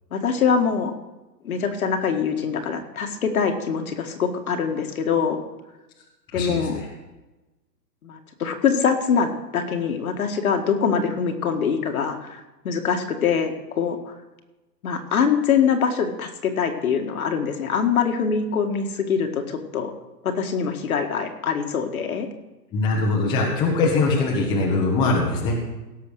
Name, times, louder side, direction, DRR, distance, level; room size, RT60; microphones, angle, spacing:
voice 1, 0.1-0.9 1.4-5.4 6.3-6.8 8.0-14.1 14.8-19.9 20.2-22.3, left 6 dB, 55° left, 4 dB, 2.0 m, -24 dB
voice 2, 6.3-6.9 22.7-25.6, left 3 dB, 10° left, -1 dB, 1.2 m, -22 dB
17.0 x 6.9 x 6.5 m, 1.1 s
hypercardioid pair, 160°, 49 cm